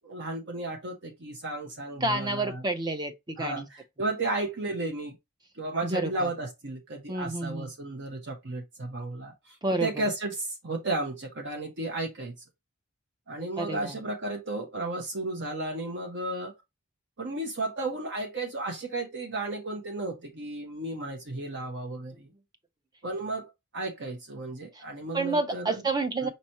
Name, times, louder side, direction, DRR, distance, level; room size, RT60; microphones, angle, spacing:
voice 1, 0.0-2.6 3.4-5.1 5.6-9.3 9.8-12.3 13.3-16.5 17.2-22.3 23.0-23.4 23.7-25.8 26.2-26.3, right 2 dB, 55° right, 1.0 m, -33 dB
voice 2, 2.0-3.7 5.8-6.3 7.1-7.7 9.6-10.1 13.6-14.0 24.7-24.8 25.1-26.3, right 2 dB, 20° right, 0.6 m, -29 dB
5.4 x 3.0 x 2.9 m
head